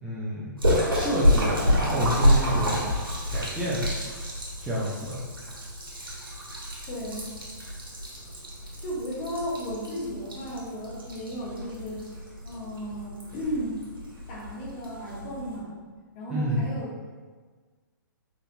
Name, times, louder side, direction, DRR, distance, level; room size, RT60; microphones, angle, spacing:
voice 1, 0.0-0.5 0.9-1.6 1.9-2.8 3.3-3.8 4.6-5.2 16.3-16.6, equal, 10° right, -8 dB, 0.8 m, -29 dB
Splash splatter, 0.6-15.6, equal, 85° right, 1.2 m, -28 dB
voice 2, 6.9-7.3 8.8-12.1 12.4-13.8 14.3-15.7 16.1-17.1, equal, 35° left, -5 dB, 1.2 m, -34 dB
3.9 x 3.8 x 2.7 m, 1.5 s
figure-of-eight pair, 120°, 11 cm